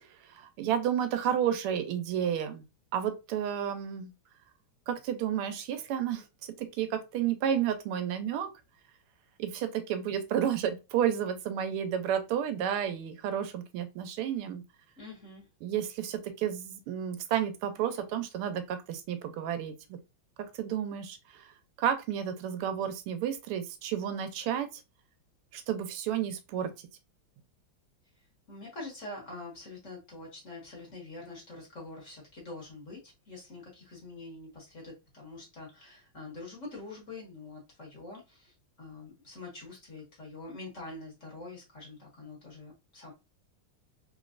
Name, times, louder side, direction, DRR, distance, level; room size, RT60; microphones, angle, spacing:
voice 1, 0.3-2.6 2.9-4.1 4.9-8.5 9.4-14.6 15.6-19.7 20.4-21.4 21.8-24.7 25.5-26.7, right 9 dB, 85° right, 1.5 m, -31 dB
voice 2, 15.0-15.5 28.5-43.1, left 2 dB, 45° left, 1.3 m, -45 dB
3.6 x 3.0 x 2.4 m
omnidirectional pair, 2.4 m